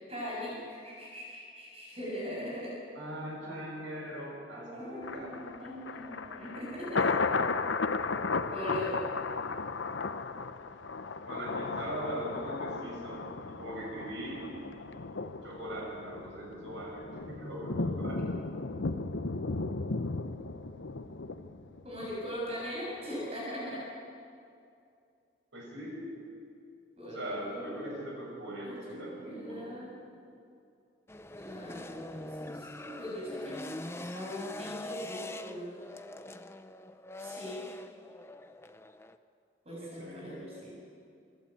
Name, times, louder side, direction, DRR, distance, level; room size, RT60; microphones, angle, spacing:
voice 1, 0.1-2.7 4.5-7.1 8.5-9.0 18.1-18.2 21.8-23.8 27.0-27.9 28.6-29.9 31.4-33.7 34.0-35.7 37.2-37.6 39.6-40.7, equal, 35° right, -5 dB, 6.7 m, -40 dB
voice 2, 2.9-5.3 11.3-13.2 13.5-14.5 15.4-18.2 25.5-26.0 27.0-29.7 39.8-40.4, right 1 dB, 90° right, -2 dB, 7.5 m, -40 dB
Thunder, 5.0-22.1 22.5-22.6, left 4 dB, 85° left, 0.8 m, -35 dB
sound 1, 31.1-39.2, left 1 dB, 15° left, 0.6 m, -43 dB
26.0 x 12.0 x 8.7 m, 2.5 s
head